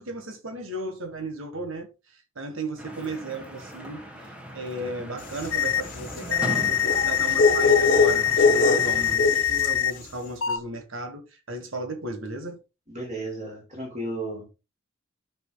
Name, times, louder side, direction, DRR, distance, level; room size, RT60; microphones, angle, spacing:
voice 1, 0.0-4.1 4.5-12.6, right 2 dB, 65° right, 1.6 m, -35 dB
sound 1, 2.8-9.2, equal, 5° right, 1.5 m, -39 dB
sound 2, 5.3-9.9, left 4 dB, 40° left, 1.4 m, -23 dB
sound 3, 5.5-5.8 6.3-9.9 10.4-10.6, left 9 dB, 65° left, 0.5 m, -24 dB
voice 2, 12.9-14.5, right 1 dB, 35° right, 5.6 m, -34 dB
12.0 x 6.2 x 2.3 m
head